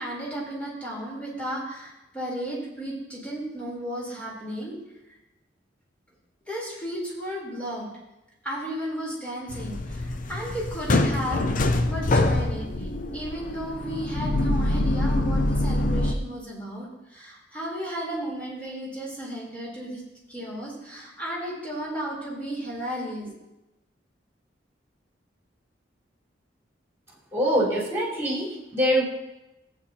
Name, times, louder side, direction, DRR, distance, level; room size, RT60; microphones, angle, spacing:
voice 1, 0.0-4.8 5.1-5.2 6.5-7.9 8.4-20.0 20.3-23.3, right 1 dB, 10° left, -5 dB, 3.5 m, -34 dB
sound 1, 9.5-16.1, left 2 dB, 45° left, 0.6 m, -25 dB
voice 2, 27.3-29.0, equal, 15° right, -7 dB, 4.1 m, -24 dB
14.5 x 9.1 x 2.8 m, 0.94 s
head